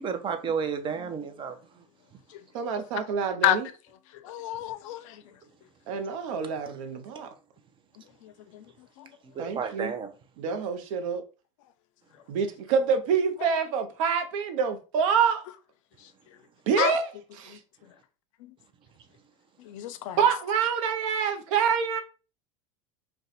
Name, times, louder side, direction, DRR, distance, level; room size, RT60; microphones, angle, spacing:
voice 1, 0.0-1.6 9.3-10.1, right 6 dB, 30° right, 0.6 m, -31 dB
voice 2, 2.5-3.7 5.9-7.3 9.4-9.9 10.4-11.2 12.3-15.4 16.7-17.1 17.4-17.6 20.2-22.0, right 6 dB, 70° right, 0.7 m, -26 dB
voice 3, 4.1-5.2 8.2-8.7 9.0-9.1 13.4-13.5 16.8-16.9 17.5-17.6 19.6-20.2, left 12 dB, 70° left, 0.4 m, -29 dB
2.5 x 2.3 x 4.0 m
supercardioid pair, 110°, 17 cm